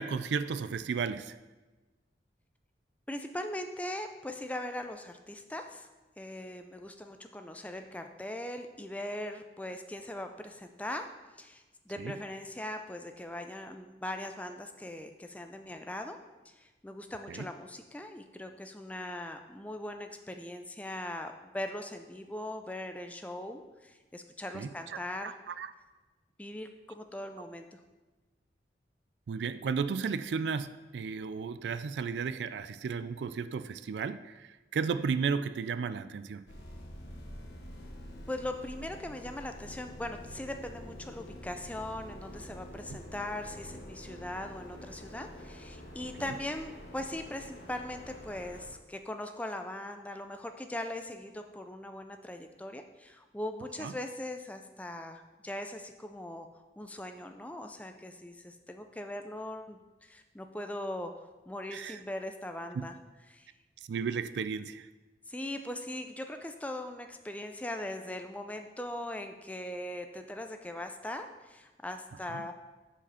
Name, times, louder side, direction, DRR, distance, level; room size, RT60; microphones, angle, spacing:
voice 1, 0.0-1.4 12.0-12.1 17.3-17.5 24.5-25.7 29.3-36.4 46.2-46.3 53.8-53.9 61.7-62.0 62.7-62.9 63.9-64.9 72.3-72.4, right 5 dB, 80° right, 13 dB, 0.3 m, -34 dB
voice 2, 3.1-5.9 6.2-11.1 11.4-16.2 16.5-25.3 26.4-27.8 38.3-56.5 56.8-63.0 63.3-63.5 65.3-72.5, left 1 dB, 10° left, 6 dB, 0.4 m, -40 dB
sound 1, 36.5-48.7, equal, 85° left, 1.2 m, -47 dB
6.8 x 5.0 x 5.6 m, 1.2 s
head